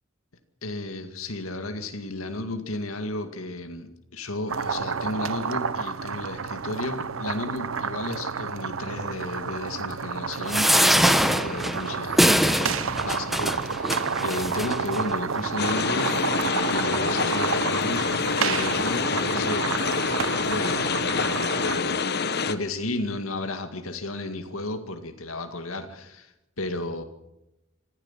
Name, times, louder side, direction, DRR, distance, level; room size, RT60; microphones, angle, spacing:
voice 1, 0.6-16.2 16.4-18.1 18.4-27.0, left 2 dB, 85° left, 7 dB, 2.1 m, -33 dB
sound 1, 4.5-21.8, right 5 dB, 70° right, 0.8 m, -30 dB
sound 2, 10.5-15.0 15.7-15.8 16.0-16.2, equal, ahead, 0.9 m, -23 dB
sound 3, 15.6-22.5, left 5 dB, 50° left, 1.1 m, -26 dB
25.5 x 15.0 x 7.5 m, 0.91 s
head